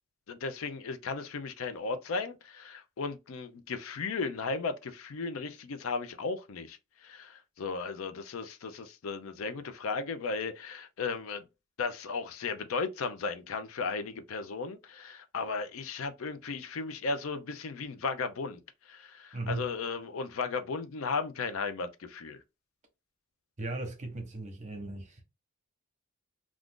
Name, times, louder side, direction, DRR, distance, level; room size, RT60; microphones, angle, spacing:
voice 1, 0.3-11.4 11.8-18.6 18.9-22.4, left 4 dB, 70° left, 0.5 m, -35 dB
voice 2, 19.3-19.7 23.6-25.2, right 2 dB, 35° right, 0.8 m, -37 dB
2.4 x 2.4 x 3.6 m
head